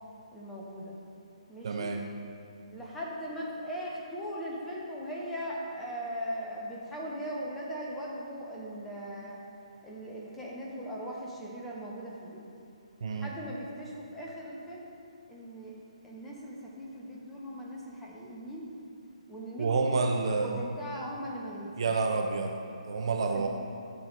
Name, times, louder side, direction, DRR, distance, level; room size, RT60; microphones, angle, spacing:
voice 1, 0.3-1.0 1.5-1.9 2.7-9.4 9.8-12.5 13.1-14.9 15.3-15.7 16.0-18.7 19.3-22.0 23.3-23.5, equal, 5° left, -4 dB, 1.3 m, -39 dB
voice 2, 1.6-2.0 13.0-13.3 19.6-20.6 21.8-22.6 22.9-23.5, right 4 dB, 50° right, 3 dB, 0.6 m, -28 dB
13.5 x 6.1 x 3.4 m, 2.6 s
figure-of-eight pair, 135°, 4 cm